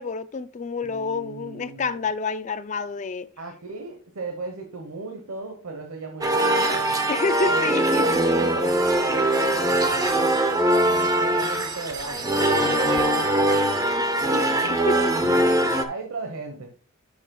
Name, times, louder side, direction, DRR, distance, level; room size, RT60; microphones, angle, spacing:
voice 1, 0.0-3.3 7.1-8.1 14.7-15.0, left 4 dB, 35° left, 0.4 m, -28 dB
voice 2, 0.8-2.1 3.4-7.0 7.5-7.7 8.0-10.4 10.9-13.7 14.6-15.5 15.8-16.7, right 3 dB, 80° right, 1.1 m, -36 dB
sound 1, 6.2-15.8, right 1 dB, 15° right, 0.7 m, -22 dB
11.0 x 6.4 x 2.3 m
head